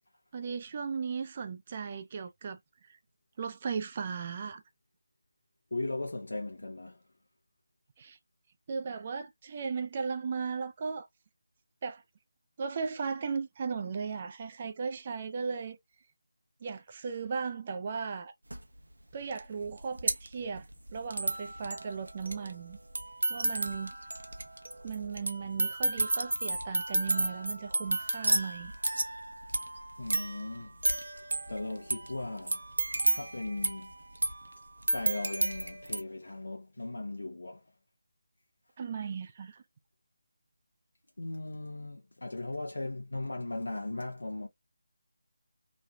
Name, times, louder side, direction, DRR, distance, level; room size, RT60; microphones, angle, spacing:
voice 1, 0.3-2.6 2.9-3.0 3.4-4.6 8.0-8.2 8.7-11.1 11.8-12.0 12.6-15.8 16.6-18.3 19.1-22.8 23.3-23.9 24.8-28.7 38.8-39.6, right 5 dB, 35° right, 0.3 m, -36 dB
voice 2, 5.7-7.0 30.0-30.7 31.1-32.6 33.1-33.9 34.9-37.6 41.2-44.5, left 2 dB, 75° left, 0.7 m, -38 dB
sound 1, 18.5-18.6 19.4-19.5 19.6-36.0, right 2 dB, 75° right, 0.8 m, -32 dB
3.2 x 2.2 x 2.5 m
figure-of-eight pair, 160°, 0 cm